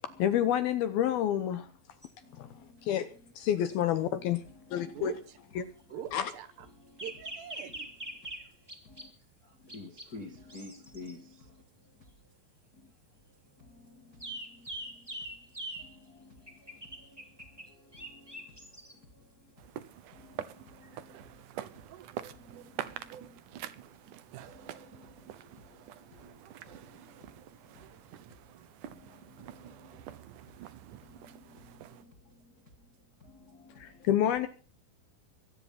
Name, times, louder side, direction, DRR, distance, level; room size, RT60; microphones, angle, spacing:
voice 1, 0.2-1.7 2.4-2.5 2.9-3.1 3.4-4.4 4.7-5.1 5.6-5.7 6.1-6.3 33.8-34.5, left 10 dB, 70° left, 2.4 m, -28 dB
sound 1, 2.0-2.1 7.0-9.1 9.7-10.1 10.5-11.2 14.2-16.0 16.5-19.0 20.8-21.0, right 1 dB, 10° right, 1.8 m, -43 dB
voice 2, 2.2-2.9 4.6-5.0 6.7-7.0 8.8-9.1 9.4-11.6 12.0-12.1 12.8-12.9 13.6-15.1 15.7-16.3 17.0-19.5 20.1-21.4 22.3-23.8 24.5-28.2 28.8-30.2 30.5-30.6 31.0-32.5 33.2-34.1, left 3 dB, 40° left, 1.3 m, -53 dB
voice 3, 4.9-5.4 5.9-6.7 7.0-7.9, right 9 dB, 70° right, 3.4 m, -43 dB
sound 2, 19.6-32.0, right 11 dB, 85° right, 1.8 m, -46 dB
22.5 x 9.9 x 5.7 m
omnidirectional pair, 5.2 m